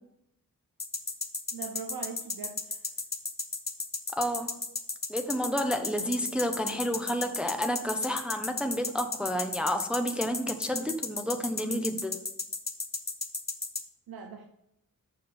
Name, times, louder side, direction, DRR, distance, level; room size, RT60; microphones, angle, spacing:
sound 1, 0.8-13.8, left 3 dB, 25° left, 0.8 m, -33 dB
voice 1, 1.5-2.8 14.1-14.5, right 6 dB, 90° right, 4 dB, 0.7 m, -41 dB
voice 2, 4.2-4.6 5.1-12.2, equal, 5° right, 5 dB, 0.6 m, -30 dB
7.1 x 5.0 x 5.1 m, 0.84 s
wide cardioid pair, 80°, 36 cm